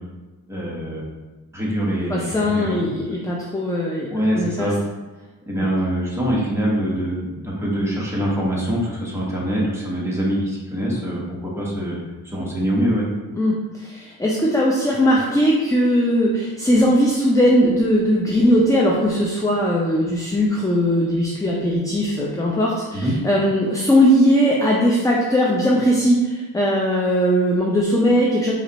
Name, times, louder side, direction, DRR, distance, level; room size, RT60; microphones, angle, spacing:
voice 1, 0.5-1.1 1.5-3.2 4.1-4.8 5.4-13.1 22.9-23.1, equal, 5° right, -5 dB, 1.3 m, -24 dB
voice 2, 2.1-4.7 5.6-5.7 13.3-28.5, equal, 10° left, -3 dB, 0.5 m, -19 dB
4.9 x 2.5 x 4.1 m, 1.2 s
wide cardioid pair, 115°, 39 cm